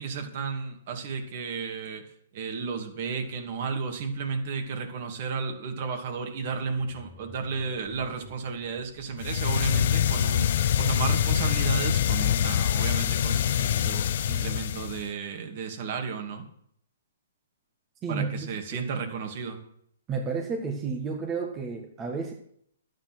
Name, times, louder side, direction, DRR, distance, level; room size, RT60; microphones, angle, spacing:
voice 1, 0.0-2.0 2.3-16.4 18.1-19.6, right 5 dB, 50° right, 4 dB, 2.5 m, -33 dB
sound 1, 6.4-14.2, left 4 dB, 20° left, 1.8 m, -53 dB
sound 2, 9.2-15.1, left 10 dB, 55° left, 0.7 m, -25 dB
voice 2, 18.0-18.8 20.1-22.3, right 5 dB, 20° right, 2 dB, 1.6 m, -31 dB
11.5 x 9.1 x 6.1 m, 0.69 s
hypercardioid pair, 135°, 0 cm